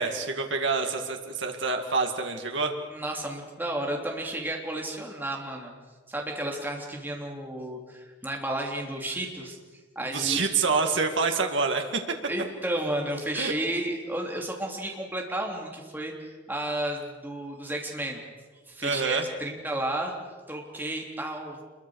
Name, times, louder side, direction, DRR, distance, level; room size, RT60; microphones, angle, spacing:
voice 1, 0.0-2.7 10.1-12.0 13.3-13.5 18.8-19.3, right 4 dB, 70° right, 4 dB, 2.1 m, -27 dB
voice 2, 2.9-5.7 6.1-9.6 10.0-10.5 12.3-18.2 18.7-20.1 20.5-21.6, right 1 dB, 10° right, 0 dB, 3.4 m, -32 dB
26.5 x 23.0 x 6.5 m, 1.4 s
head